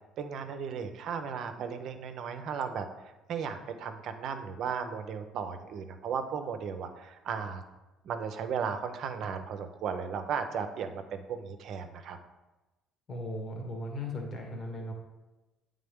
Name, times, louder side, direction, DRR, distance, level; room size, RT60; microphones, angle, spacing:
voice 1, 0.2-2.9 3.3-7.6 8.0-12.2, right 6 dB, 60° right, 8 dB, 0.6 m, -35 dB
voice 2, 13.1-14.9, left 1 dB, 45° left, 2 dB, 1.4 m, -37 dB
8.4 x 3.6 x 3.6 m, 1.1 s
supercardioid pair, 75°, 0 cm